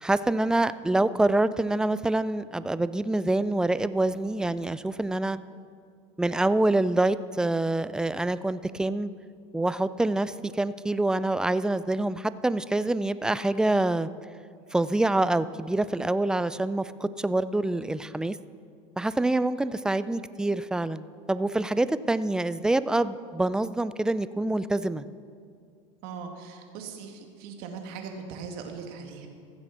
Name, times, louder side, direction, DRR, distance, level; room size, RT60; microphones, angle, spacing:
voice 1, 0.0-5.4 6.2-9.1 9.5-14.1 14.7-18.4 19.0-25.0, right 2 dB, 5° right, 15 dB, 0.3 m, -26 dB
voice 2, 26.0-29.3, right 5 dB, 65° right, 3 dB, 1.9 m, -40 dB
14.5 x 7.7 x 6.1 m, 2.2 s
supercardioid pair, 110°, 17 cm